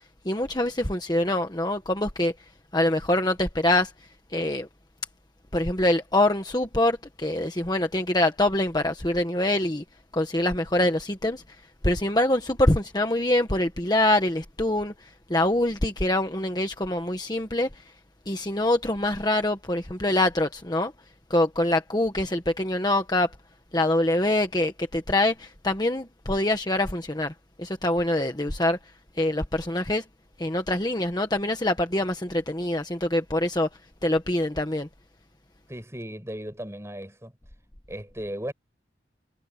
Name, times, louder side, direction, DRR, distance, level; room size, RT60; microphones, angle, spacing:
voice 1, 0.2-2.3 2.7-3.9 4.3-4.7 5.5-9.8 10.1-11.4 11.8-17.8 18.3-20.9 21.3-23.3 23.7-27.3 27.6-28.8 29.2-30.0 30.4-33.7 34.0-34.9, left 1 dB, 20° left, 1.4 m, -24 dB
voice 2, 35.7-37.3 37.9-38.5, equal, 15° right, 7.0 m, -36 dB
head